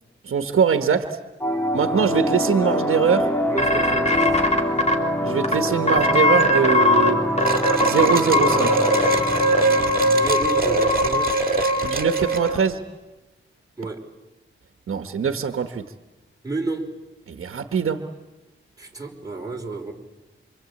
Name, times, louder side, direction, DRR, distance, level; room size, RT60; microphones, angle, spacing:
voice 1, 0.2-1.2 1.7-3.3 5.2-7.2 7.8-8.8 11.8-12.8 14.9-15.8 17.3-18.0, right 6 dB, 90° right, 7 dB, 1.4 m, -22 dB
sound 1, 1.4-12.4, equal, 10° left, 2.4 m, -26 dB
voice 2, 3.5-4.4 10.0-11.5 13.8-14.0 16.4-16.9 18.8-19.9, right 3 dB, 15° right, 0 dB, 4.8 m, -31 dB
sound 2, 3.6-4.9 5.4-5.5 5.9-7.1 7.4-12.6, left 1 dB, 30° left, 3.5 m, -20 dB
Mechanisms, 7.4-12.7, right 4 dB, 45° right, 2.2 m, -33 dB
27.5 x 25.0 x 8.6 m, 1.1 s
wide cardioid pair, 90°, 21 cm